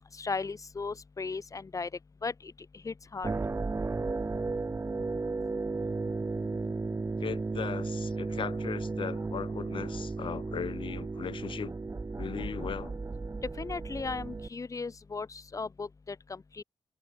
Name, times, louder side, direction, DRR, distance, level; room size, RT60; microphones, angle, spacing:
voice 1, 0.2-1.9 2.2-2.5 2.8-3.3 13.6-16.6, left 4 dB, 35° left, 2.1 m, -36 dB
sound 1, 3.2-14.5, right 3 dB, 30° right, 1.2 m, -34 dB
voice 2, 7.2-11.7 12.2-12.9, left 7 dB, 65° left, 2.6 m, -38 dB
cardioid pair, 75°, 9 cm